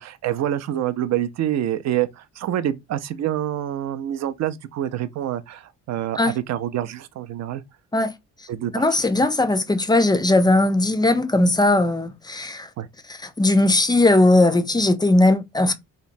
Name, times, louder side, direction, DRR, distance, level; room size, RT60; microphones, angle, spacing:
voice 1, 0.0-7.6 8.5-8.8 9.2-9.3 12.8-12.9, right 11 dB, 60° right, 0.4 m, -26 dB
voice 2, 8.7-12.7 13.2-15.7, left 2 dB, 15° left, 0.3 m, -18 dB
2.9 x 2.1 x 2.5 m
cardioid pair, 90°, 30 cm